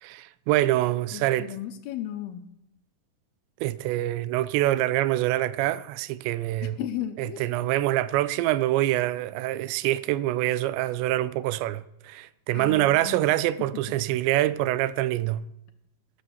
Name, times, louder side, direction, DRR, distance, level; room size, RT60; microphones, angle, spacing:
voice 1, 0.0-1.5 3.6-6.8 7.2-15.5, right 15 dB, 85° right, 2.9 m, -25 dB
voice 2, 1.1-2.5 6.6-7.7 12.5-13.4, left 12 dB, 75° left, 2.6 m, -35 dB
13.5 x 12.0 x 7.1 m
omnidirectional pair, 5.0 m